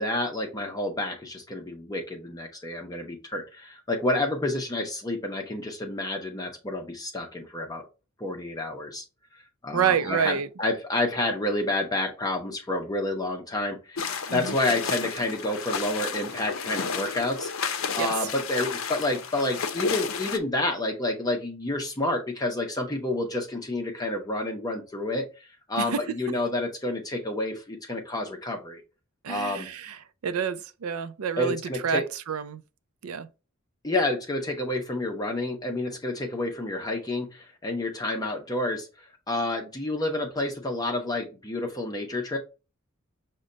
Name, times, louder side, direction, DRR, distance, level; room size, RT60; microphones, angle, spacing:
voice 1, 0.0-7.9 8.2-9.0 9.3-28.8 29.3-29.7 31.4-32.0 33.8-42.4, left 2 dB, 15° left, 0.6 m, -29 dB
voice 2, 9.7-10.5 14.3-14.5 18.0-18.1 25.8-26.0 29.2-30.0 30.2-32.0 32.3-32.6 33.0-33.3, right 7 dB, 80° right, 0.4 m, -28 dB
sound 1, 14.0-20.4, left 5 dB, 65° left, 0.6 m, -32 dB
6.2 x 2.2 x 3.8 m
head